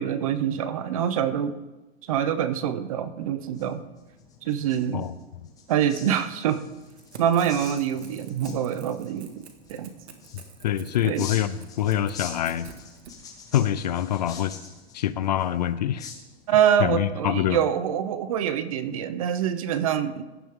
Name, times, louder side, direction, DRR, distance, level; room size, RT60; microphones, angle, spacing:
voice 1, 0.0-1.6 2.0-3.8 4.4-5.1 5.7-6.6 7.2-9.3 9.7-9.9 11.0-11.3 16.5-20.2, right 9 dB, 35° right, 13 dB, 0.7 m, -25 dB
sound 1, 3.2-16.8, left 5 dB, 10° left, 1.3 m, -46 dB
Crackle / Tearing, 6.8-13.1, right 6 dB, 75° right, 2.0 m, -48 dB
voice 2, 10.3-12.7 13.5-14.5 14.9-16.1 16.8-17.6, left 11 dB, 40° left, 14 dB, 0.5 m, -25 dB
16.0 x 11.0 x 3.6 m, 1.1 s
supercardioid pair, 170°, 32 cm